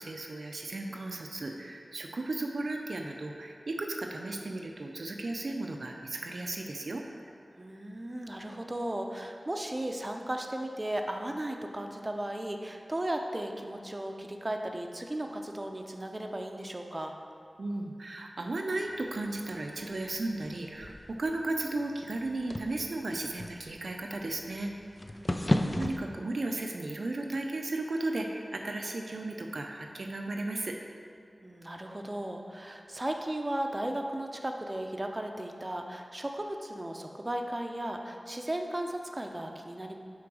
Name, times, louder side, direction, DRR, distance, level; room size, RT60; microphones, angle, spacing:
voice 1, 0.0-7.0 17.6-24.7 25.8-30.8, right 2 dB, 70° right, 2 dB, 0.5 m, -35 dB
voice 2, 7.5-17.2 25.2-25.8 31.4-39.9, right 1 dB, 30° right, 3 dB, 0.6 m, -36 dB
sound 1, 18.9-26.0, left 1 dB, 35° left, 0.4 m, -36 dB
6.1 x 3.9 x 6.1 m, 2.3 s
cardioid pair, 45°, 0 cm